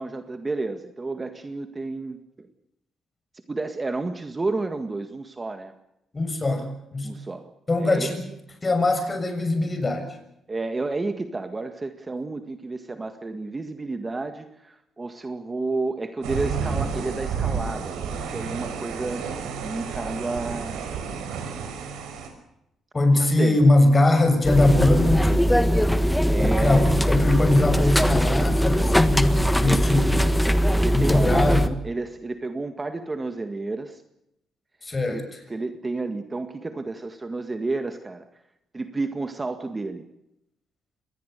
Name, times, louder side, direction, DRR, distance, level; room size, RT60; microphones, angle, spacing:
voice 1, 0.0-2.2 3.5-5.7 7.0-7.5 7.8-8.1 10.5-19.3 19.6-20.8 23.2-23.6 26.3-26.9 29.6-30.0 30.8-34.0 35.1-38.2 38.7-40.1, right 3 dB, 25° right, 8 dB, 1.8 m, -31 dB
voice 2, 6.1-7.1 7.7-8.2 8.6-10.0 22.9-25.5 26.4-30.3 30.9-31.7 34.8-35.4, left 2 dB, 25° left, 7 dB, 6.7 m, -21 dB
sound 1, 16.2-22.3, right 6 dB, 90° right, 5.5 m, -31 dB
sound 2, 24.4-31.7, equal, 5° left, 1.5 m, -21 dB
25.5 x 19.5 x 6.8 m, 0.84 s
cardioid pair, 90°, 0 cm